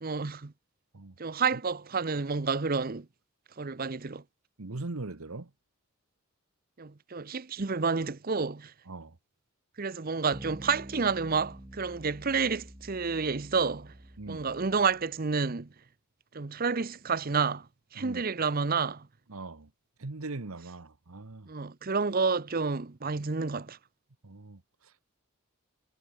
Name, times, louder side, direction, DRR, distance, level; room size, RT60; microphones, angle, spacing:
voice 1, 0.0-0.5 1.2-3.1 3.6-4.2 6.8-8.7 9.8-13.9 14.3-15.7 16.3-17.7 17.9-19.1 21.5-23.8, right 5 dB, 40° right, 0.7 m, -29 dB
voice 2, 4.6-5.5 8.9-9.2 14.2-14.5 18.0-18.2 19.3-19.7 20.0-21.5 24.2-24.6, right 2 dB, 80° right, 1.2 m, -40 dB
sound 1, 10.3-15.1, equal, 20° right, 2.0 m, -48 dB
head